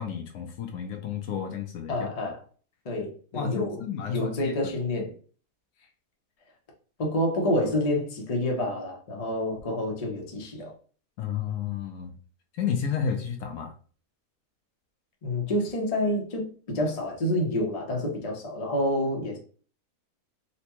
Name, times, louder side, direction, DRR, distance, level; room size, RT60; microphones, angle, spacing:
voice 1, 0.0-2.0 3.3-4.5 11.2-12.1 12.5-13.7, left 7 dB, 75° left, 1.0 m, -31 dB
voice 2, 1.9-2.4 2.8-5.1 7.0-10.7 15.2-19.4, left 1 dB, 35° left, 0.6 m, -28 dB
4.1 x 2.2 x 2.9 m
omnidirectional pair, 1.6 m